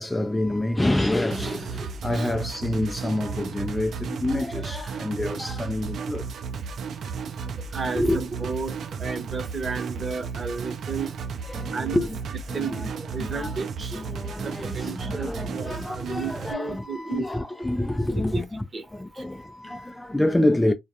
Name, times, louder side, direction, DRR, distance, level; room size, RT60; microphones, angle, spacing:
voice 1, 0.0-6.3 7.4-7.5 8.0-8.2 11.4-12.2 12.5-12.9 13.2-13.6 13.9-18.6 18.9-20.7, left 1 dB, 10° left, 0.3 m, -27 dB
sound 1, 1.3-16.5, right 5 dB, 60° right, 0.5 m, -34 dB
voice 2, 7.7-11.1 11.7-12.1 12.5-14.0 14.4-17.3 18.2-18.4 18.7-18.8 19.1-19.2, right 4 dB, 30° right, 0.8 m, -33 dB
2.2 x 2.2 x 2.7 m
cardioid pair, 95°, 0 cm